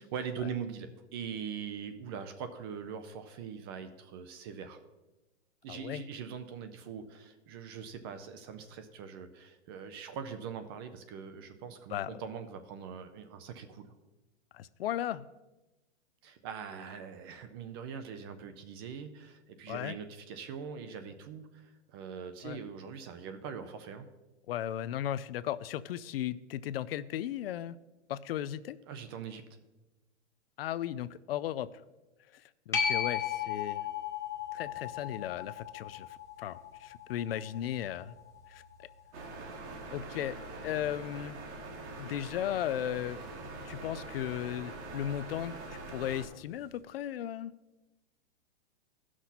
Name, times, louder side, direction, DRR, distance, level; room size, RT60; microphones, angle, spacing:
voice 1, 0.0-4.8 5.6-13.9 16.2-24.1 28.9-29.4, right 7 dB, 25° right, 9 dB, 0.4 m, -42 dB
voice 2, 5.7-6.1 11.9-12.1 14.5-15.3 19.7-20.0 22.4-22.6 24.5-27.8 28.1-28.8 30.6-31.7 32.3-33.9 34.5-38.1 38.5-38.6 39.9-40.4 40.6-41.4 42.0-43.2 43.6-45.6 45.9-47.5, left 11 dB, 60° left, 16 dB, 0.5 m, -36 dB
sound 1, 32.7-39.9 45.4-45.5, left 8 dB, 10° left, 0.8 m, -37 dB
sound 2, 39.1-46.2, right 2 dB, 70° right, 1.9 m, -44 dB
15.0 x 6.1 x 4.1 m, 1.1 s
hypercardioid pair, 150°, 34 cm